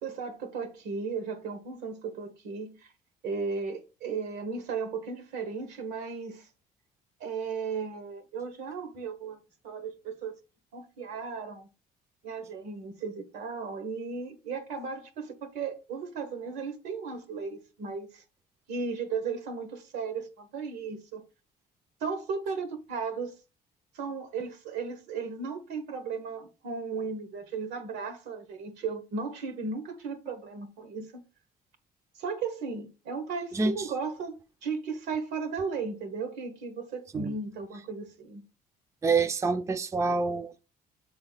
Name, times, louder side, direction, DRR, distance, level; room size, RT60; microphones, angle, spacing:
voice 1, 0.0-2.9 3.2-6.5 7.2-9.4 9.6-10.3 10.7-11.7 12.2-18.2 18.7-21.2 22.0-23.3 23.9-31.2 32.1-38.4, right 5 dB, 85° right, 1.3 m, -35 dB
voice 2, 33.5-33.9 37.1-37.3 39.0-40.6, right 4 dB, 20° right, 0.4 m, -27 dB
6.8 x 3.9 x 4.0 m
cardioid pair, 110°, 17 cm